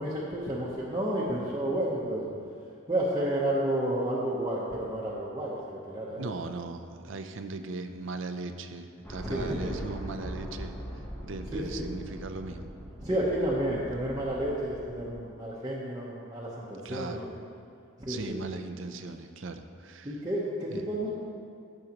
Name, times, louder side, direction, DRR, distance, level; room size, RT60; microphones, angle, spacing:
voice 1, 0.0-2.2 2.9-6.3 9.2-9.8 11.5-11.8 13.0-17.3 18.0-18.4 20.0-21.1, right 1 dB, 20° right, -8 dB, 0.9 m, -31 dB
voice 2, 6.2-12.7 16.8-17.3 18.1-20.2 20.7-20.8, right 3 dB, 60° right, 7 dB, 0.5 m, -38 dB
sound 1, 9.0-15.3, equal, 10° left, 0.8 m, -41 dB
15.5 x 6.3 x 2.9 m, 2.5 s
head